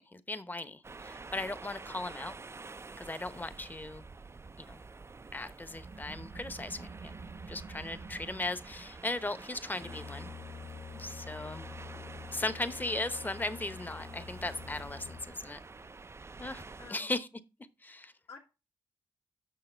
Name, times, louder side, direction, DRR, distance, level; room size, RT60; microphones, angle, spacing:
voice 1, 0.1-2.3 3.0-4.0 4.6-4.8 5.3-7.2 7.5-10.3 11.0-11.7 11.9-12.0 12.3-15.6 16.4-16.6 16.9-17.3 17.8-18.1, left 2 dB, 20° left, 1.0 m, -37 dB
sound 1, 0.8-16.9, right 3 dB, 25° right, 0.4 m, -49 dB
sound 2, 5.7-10.9, right 4 dB, 60° right, 0.9 m, -49 dB
Brass instrument, 9.7-15.5, left 5 dB, 45° left, 2.2 m, -47 dB
voice 2, 16.8-17.1 18.3-18.4, left 5 dB, 70° left, 2.1 m, -53 dB
8.6 x 6.3 x 4.4 m
cardioid pair, 55°, 10 cm